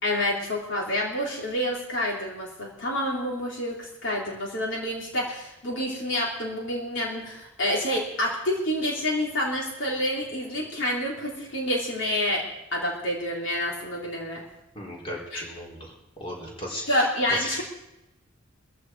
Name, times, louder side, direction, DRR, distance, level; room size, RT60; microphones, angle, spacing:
voice 1, 0.0-12.4 12.7-14.4 15.3-15.4 16.9-17.6, left 1 dB, 65° left, -2 dB, 3.5 m, -28 dB
voice 2, 14.7-17.6, equal, 30° left, -2 dB, 4.5 m, -36 dB
20.0 x 15.0 x 4.8 m, 0.91 s
head